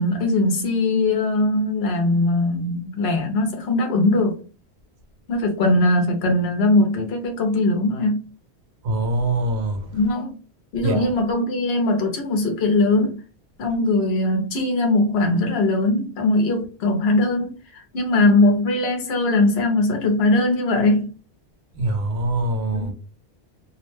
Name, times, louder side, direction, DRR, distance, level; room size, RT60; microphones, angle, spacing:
voice 1, 0.0-4.4 5.3-8.2 9.9-10.4 10.7-13.2 13.6-21.1 22.7-22.9, left 2 dB, 75° left, 1.0 m, -20 dB
voice 2, 8.8-9.8 10.8-11.1 21.8-22.9, right 2 dB, 80° right, 0.9 m, -23 dB
2.6 x 2.0 x 3.1 m
omnidirectional pair, 1.1 m